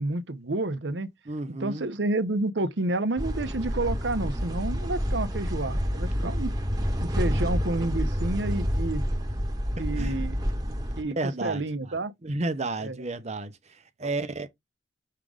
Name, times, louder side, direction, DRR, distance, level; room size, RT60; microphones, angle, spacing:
voice 1, 0.0-1.1 1.6-6.5 7.0-9.0 9.8-10.4 11.0-11.1 11.4-12.1 12.8-13.0 14.0-14.1, right 2 dB, 75° right, 0.9 m, -29 dB
voice 2, 1.3-1.8 6.2-6.3 10.0-10.2 10.7-10.8 11.0-12.0 12.2-14.5, right 2 dB, 40° right, 0.9 m, -32 dB
sound 1, 3.2-11.0, equal, 20° right, 1.4 m, -28 dB
6.6 x 3.8 x 4.9 m
head